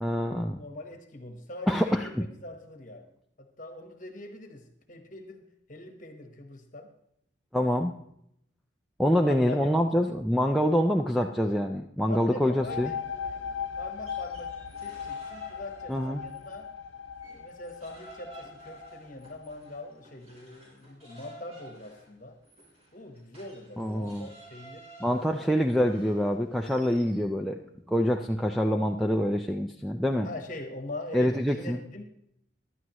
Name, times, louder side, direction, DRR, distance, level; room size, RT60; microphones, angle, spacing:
voice 1, 0.0-0.6 1.7-2.2 7.5-7.9 9.0-12.9 15.9-16.2 23.8-24.3 25.0-27.6 27.9-30.3 31.1-31.8, equal, ahead, 0 dB, 0.5 m, -26 dB
voice 2, 0.6-3.1 3.4-6.9 9.2-10.0 12.1-16.7 17.3-22.4 22.9-25.5 30.2-32.0, left 2 dB, 40° left, 6 dB, 1.2 m, -43 dB
sound 1, 12.5-19.9, left 7 dB, 85° left, 0.6 m, -38 dB
sound 2, 13.9-16.6 17.0-27.2, right 2 dB, 35° right, 3.8 m, -52 dB
15.5 x 11.0 x 3.0 m, 0.74 s
head